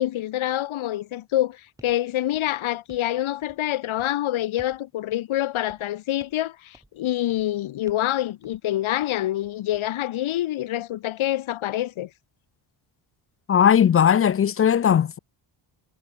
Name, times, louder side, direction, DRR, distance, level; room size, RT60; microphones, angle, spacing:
voice 1, 0.0-12.1, left 13 dB, 80° left, 1.5 m, -26 dB
sound 1, 1.8-2.0 2.3-3.1 3.4-3.7 4.0-4.2 4.6-4.8 5.1-5.2 5.7-5.9 6.2-6.5 6.7-7.0 7.3-7.5 7.9-8.1 8.4-8.6 9.0-9.9, right 1 dB, 5° right, 6.2 m, -55 dB
voice 2, 13.5-15.2, left 8 dB, 30° left, 0.3 m, -18 dB
wide cardioid pair, 175°, 47 cm